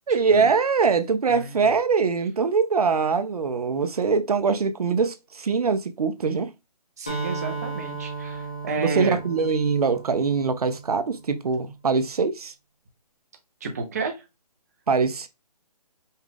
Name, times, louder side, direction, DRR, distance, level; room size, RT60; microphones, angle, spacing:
voice 1, 0.1-6.5 8.8-12.5 14.9-15.3, right 5 dB, 65° right, 0.7 m, -23 dB
voice 2, 1.3-1.6 7.0-9.2 13.6-14.2, right 4 dB, 25° right, 0.7 m, -31 dB
Acoustic guitar, 7.1-10.9, right 4 dB, 10° left, 0.4 m, -34 dB
5.4 x 2.4 x 3.7 m
hypercardioid pair, 170°, 21 cm